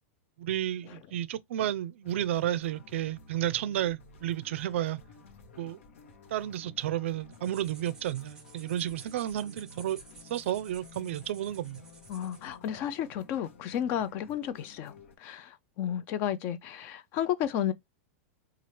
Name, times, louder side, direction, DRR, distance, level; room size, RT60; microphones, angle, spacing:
voice 1, 0.4-5.0 5.6-5.8 6.3-10.0 10.3-11.9, right 12 dB, 70° right, 0.4 m, -32 dB
sound 1, 2.0-15.2, left 4 dB, 80° left, 1.0 m, -53 dB
sound 2, 7.3-12.6, right 4 dB, 10° right, 0.6 m, -53 dB
voice 2, 12.1-14.9 15.2-17.7, left 10 dB, 30° left, 0.3 m, -32 dB
4.3 x 2.4 x 3.1 m
supercardioid pair, 175°, 7 cm